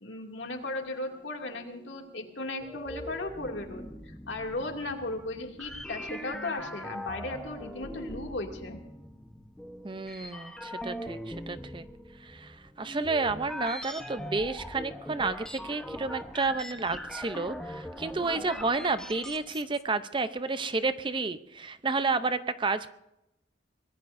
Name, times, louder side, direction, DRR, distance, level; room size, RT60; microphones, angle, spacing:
voice 1, 0.0-3.9 4.3-8.8, left 2 dB, 85° left, 2 dB, 2.4 m, -36 dB
sound 1, 0.6-19.8, equal, 5° left, 1.0 m, -42 dB
voice 2, 9.8-11.9 12.2-22.9, right 3 dB, 25° right, 12 dB, 0.6 m, -31 dB
23.5 x 19.5 x 2.6 m, 0.89 s
head